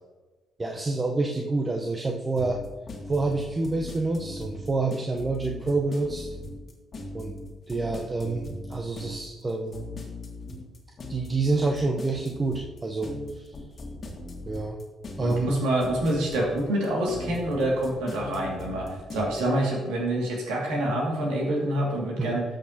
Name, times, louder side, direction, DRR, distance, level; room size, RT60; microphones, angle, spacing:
voice 1, 0.6-2.6 3.1-6.3 7.1-7.3 7.7-9.8 11.1-13.5 14.5-14.8 15.2-15.5 22.2-22.4, right 3 dB, 30° right, 1 dB, 0.9 m, -28 dB
sound 1, 2.4-19.4, left 2 dB, 50° left, 1.7 m, -39 dB
voice 2, 15.2-22.4, right 1 dB, 75° right, -2 dB, 2.3 m, -26 dB
13.0 x 6.2 x 2.9 m, 1.2 s
hypercardioid pair, 45°, 0 cm